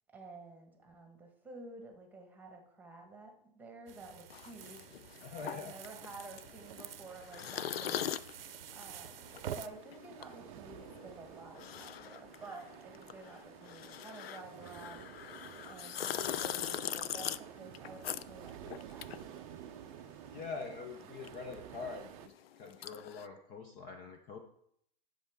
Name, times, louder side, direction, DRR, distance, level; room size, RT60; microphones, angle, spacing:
voice 1, 0.1-4.9 5.4-8.1 8.7-9.3 9.5-15.0 15.6-19.4, right 2 dB, 5° right, 3 dB, 1.4 m, -51 dB
sound 1, 3.9-9.7, right 10 dB, 75° right, 0.8 m, -48 dB
sound 2, 4.3-20.1 20.4-23.3, left 10 dB, 85° left, 0.5 m, -42 dB
voice 2, 5.2-5.7 20.3-24.4, left 4 dB, 25° left, 5 dB, 0.7 m, -44 dB
sound 3, 9.2-22.3, right 11 dB, 35° right, 0.6 m, -51 dB
11.0 x 6.7 x 3.6 m, 0.72 s
hypercardioid pair, 140°, 29 cm